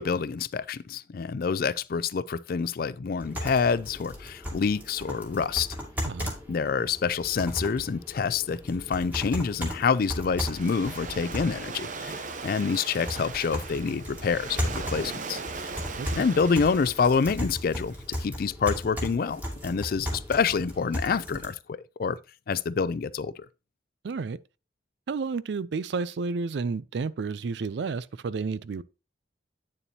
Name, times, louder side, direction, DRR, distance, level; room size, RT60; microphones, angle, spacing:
voice 1, 0.0-5.8 6.5-15.7 16.2-22.2 22.5-23.5, left 5 dB, 55° left, 0.4 m, -27 dB
sound 1, 3.2-21.5, equal, 10° right, 2.3 m, -36 dB
voice 2, 6.0-6.3 16.0-16.3 24.0-24.4 25.1-28.8, right 4 dB, 70° right, 0.4 m, -31 dB
Waves surf, 9.7-18.0, right 4 dB, 45° right, 0.7 m, -39 dB
8.9 x 6.9 x 2.8 m
head